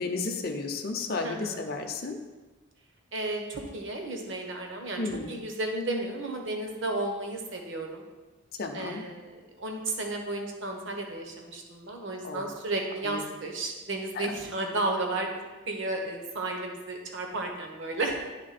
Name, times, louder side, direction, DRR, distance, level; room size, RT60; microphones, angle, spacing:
voice 1, 0.0-2.2 5.0-5.3 8.6-9.1 12.2-12.5 13.0-13.2 14.1-14.2, left 3 dB, 45° left, 3 dB, 0.6 m, -33 dB
voice 2, 1.2-1.6 3.1-8.0 8.7-18.2, right 2 dB, 55° right, 2 dB, 1.0 m, -33 dB
9.9 x 3.6 x 4.1 m, 1.2 s
head